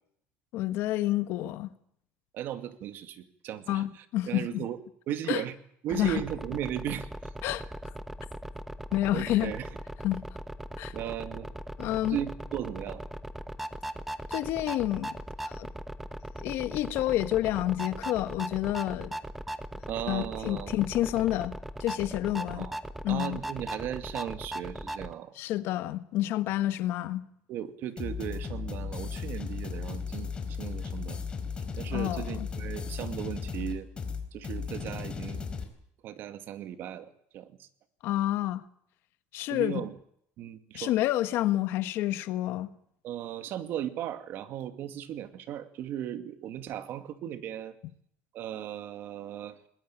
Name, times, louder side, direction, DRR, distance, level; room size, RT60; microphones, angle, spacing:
voice 1, 0.5-1.7 3.7-4.6 5.3-5.4 5.9-6.2 7.4-7.6 8.9-9.5 10.0-10.3 10.8-10.9 11.8-12.2 14.3-15.7 16.4-19.2 20.1-22.7 23.0-23.4 25.3-27.3 31.9-32.5 38.0-38.6 39.3-39.8 40.7-42.7, left 14 dB, 60° left, 1.5 m, -29 dB
voice 2, 2.3-4.8 5.1-5.5 5.8-7.1 9.1-9.7 10.9-11.5 12.0-13.0 19.9-20.8 22.5-22.8 23.1-25.3 27.5-30.3 30.6-31.2 31.8-33.9 34.3-35.5 36.0-37.7 39.5-40.0 40.4-40.9 43.0-47.7 48.3-49.7, right 11 dB, 55° right, 2.3 m, -36 dB
sound 1, 5.9-25.1, right 1 dB, 5° right, 1.1 m, -39 dB
sound 2, 28.0-35.6, left 5 dB, 20° left, 4.2 m, -36 dB
21.0 x 20.5 x 8.9 m
cardioid pair, 135°, 4 cm